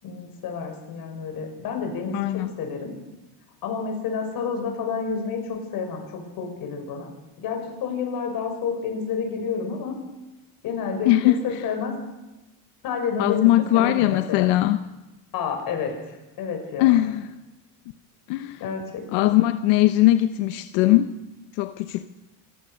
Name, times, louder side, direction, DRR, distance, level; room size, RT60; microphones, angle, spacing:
voice 1, 0.0-2.9 3.6-7.1 7.4-9.9 10.6-11.9 12.8-14.5 15.3-16.9 18.6-19.3, left 5 dB, 50° left, 4 dB, 6.1 m, -30 dB
voice 2, 2.1-2.5 11.1-11.4 13.2-14.8 16.8-17.3 18.3-18.7 19.1-21.1 21.6-22.1, left 15 dB, 90° left, 9 dB, 1.1 m, -20 dB
26.0 x 16.0 x 6.5 m, 1.0 s
cardioid pair, 150°, 45 cm